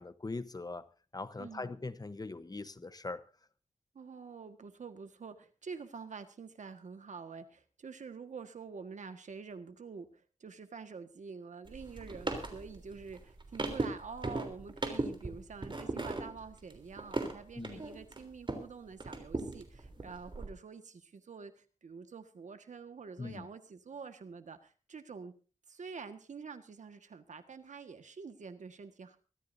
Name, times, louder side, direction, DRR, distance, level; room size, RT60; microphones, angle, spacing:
voice 1, 0.0-3.2 17.6-17.8 23.2-23.5, left 3 dB, 30° left, 0.9 m, -41 dB
voice 2, 1.4-1.8 3.9-25.3 25.7-29.2, right 5 dB, 85° right, 1.6 m, -47 dB
sound 1, 11.6-18.7 19.0-20.5, right 2 dB, 40° right, 3.4 m, -38 dB
24.0 x 13.5 x 2.7 m
wide cardioid pair, 80°, 12 cm